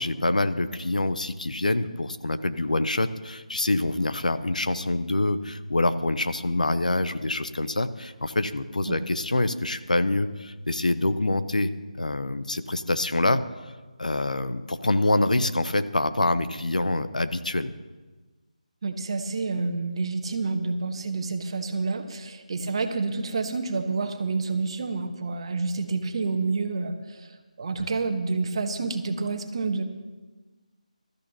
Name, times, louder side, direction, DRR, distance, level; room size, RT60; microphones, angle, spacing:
voice 1, 0.0-11.7 12.0-13.4 14.0-17.7 27.8-27.9, left 2 dB, 75° left, 11 dB, 0.9 m, -26 dB
voice 2, 18.8-27.3 27.6-29.8, right 3 dB, 45° right, 6 dB, 1.3 m, -28 dB
21.5 x 13.5 x 2.9 m, 1.3 s
figure-of-eight pair, 155°, 4 cm